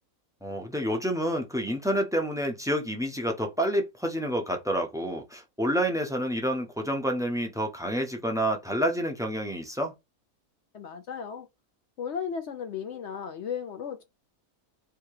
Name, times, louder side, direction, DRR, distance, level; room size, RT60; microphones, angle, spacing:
voice 1, 0.4-9.9, equal, 5° right, 0.6 m, -28 dB
voice 2, 10.7-11.5 12.0-14.0, left 7 dB, 60° left, 0.8 m, -35 dB
3.5 x 2.8 x 4.7 m
omnidirectional pair, 1.6 m